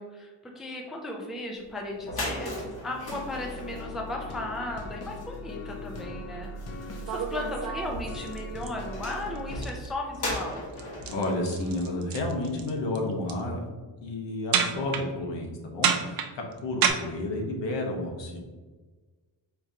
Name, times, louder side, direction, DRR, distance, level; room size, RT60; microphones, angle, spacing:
voice 1, 0.0-6.5 6.8-10.6, left 1 dB, ahead, 0 dB, 0.3 m, -36 dB
sound 1, 1.7-1.8 2.0-12.7, left 1 dB, 55° left, 1.3 m, -39 dB
sound 2, 3.0-9.6, left 1 dB, 35° left, 0.6 m, -39 dB
sound 3, 6.5-6.6 7.1-8.7 9.1-9.4 9.6-9.9 10.1-10.4 10.7-12.7 12.9-13.4 14.5-15.0 15.8-16.9, right 7 dB, 50° right, 0.5 m, -28 dB
voice 2, 11.1-13.6 14.0-18.4, left 2 dB, 75° left, 1 dB, 1.1 m, -31 dB
4.5 x 3.6 x 2.7 m, 1.3 s
cardioid pair, 155°, 45 cm